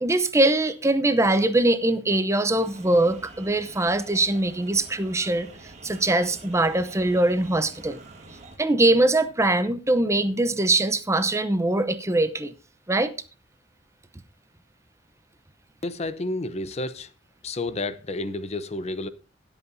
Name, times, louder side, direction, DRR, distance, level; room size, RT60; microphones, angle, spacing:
voice 1, 0.0-5.5 5.8-8.0 8.6-12.5 12.9-13.1, right 2 dB, 15° right, 0.7 m, -22 dB
sound 1, 2.5-8.6, right 2 dB, 40° right, 2.4 m, -47 dB
voice 2, 15.8-17.1 17.4-19.1, left 2 dB, 35° left, 0.7 m, -30 dB
20.5 x 8.1 x 2.7 m
head